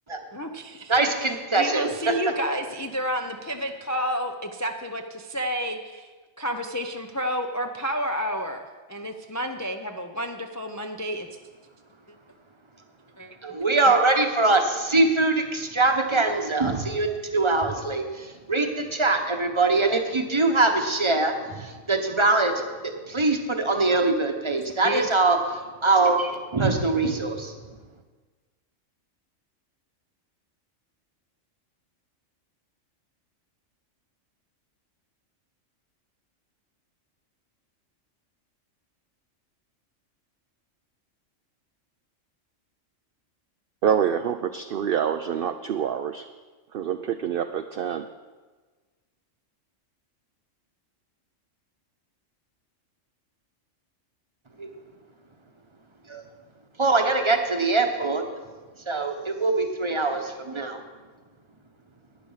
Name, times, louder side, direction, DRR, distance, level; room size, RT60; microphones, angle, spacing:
voice 1, 0.3-1.1 1.5-6.1 6.4-8.6 8.9-11.3 13.2-13.6 24.8-25.1, equal, 25° left, 4 dB, 0.4 m, -30 dB
voice 2, 0.9-2.1 13.4-25.4 25.8-27.5 54.6-54.7 56.1-56.2 56.8-58.2 58.9-60.8, right 3 dB, 25° right, 4 dB, 1.0 m, -23 dB
voice 3, 43.8-46.3 46.7-48.1, right 8 dB, 60° right, 9 dB, 0.6 m, -26 dB
11.5 x 9.7 x 5.6 m, 1.3 s
omnidirectional pair, 1.3 m